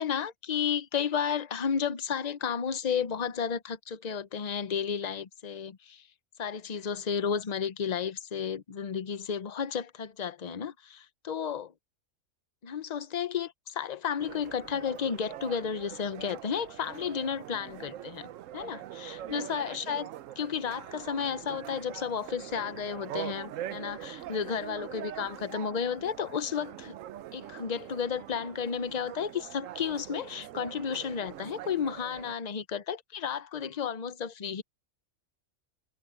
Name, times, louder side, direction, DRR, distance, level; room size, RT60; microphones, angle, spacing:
voice 1, 0.0-6.0 6.4-11.7 12.6-20.1 20.4-27.0 27.3-34.6, left 7 dB, 40° left, 0.7 m, -32 dB
sound 1, 14.2-32.4, right 12 dB, 85° right, 1.0 m, -43 dB
omnidirectional pair, 1.3 m